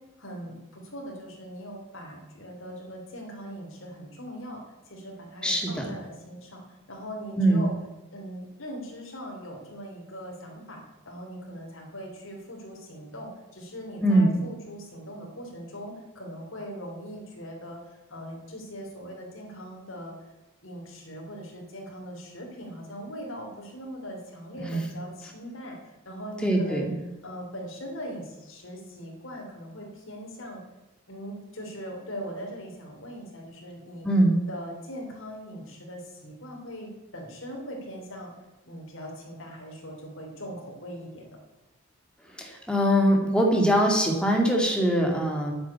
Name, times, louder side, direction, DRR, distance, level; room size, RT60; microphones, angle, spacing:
voice 1, 0.2-4.6 4.9-6.6 6.9-7.7 8.1-17.8 18.1-20.2 20.6-26.9 27.2-30.6 31.1-34.1 34.5-38.3 38.6-41.3, equal, 65° left, 0 dB, 3.6 m, -40 dB
voice 2, 5.4-5.9 7.4-7.7 14.0-14.3 24.7-24.8 26.4-26.9 34.0-34.3 42.4-45.5, right 1 dB, 5° left, 0 dB, 2.2 m, -22 dB
9.5 x 9.3 x 8.2 m, 1.0 s
head